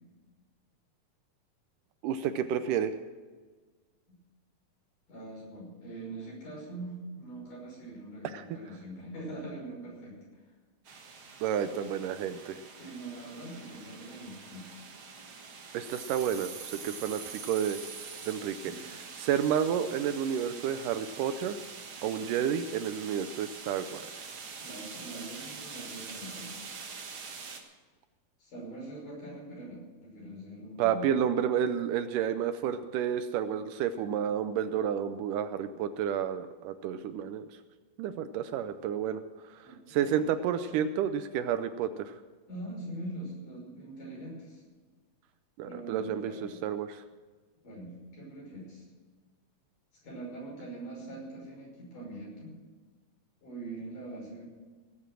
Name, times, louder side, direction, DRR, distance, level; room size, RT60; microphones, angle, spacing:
voice 1, 2.0-2.9 8.3-8.5 11.4-12.6 15.7-17.8 18.3-18.6 19.2-21.6 22.0-24.3 30.8-37.5 38.0-42.2 45.6-47.0, right 9 dB, 80° right, 10 dB, 2.1 m, -30 dB
voice 2, 5.1-10.2 12.8-14.7 18.6-18.8 24.6-26.6 28.4-31.1 39.6-40.3 42.5-44.6 45.6-46.6 47.6-48.9 50.0-52.6 53.4-54.4, right 2 dB, 65° left, -3 dB, 7.1 m, -43 dB
sound 1, 10.8-27.6, right 5 dB, 50° right, 1.7 m, -45 dB
17.5 x 7.9 x 7.6 m, 1.4 s
omnidirectional pair, 4.0 m